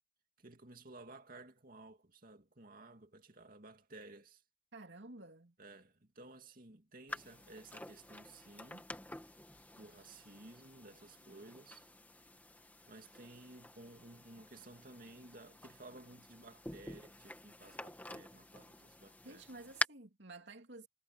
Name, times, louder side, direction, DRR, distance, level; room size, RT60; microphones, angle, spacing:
voice 1, 0.4-4.4 5.6-8.9 9.8-11.9 12.9-19.4, right 2 dB, 50° right, 2.5 m, -55 dB
voice 2, 4.7-5.5 19.2-20.9, right 2 dB, 70° right, 2.8 m, -52 dB
sound 1, 7.1-19.9, left 1 dB, 10° left, 1.7 m, -47 dB
head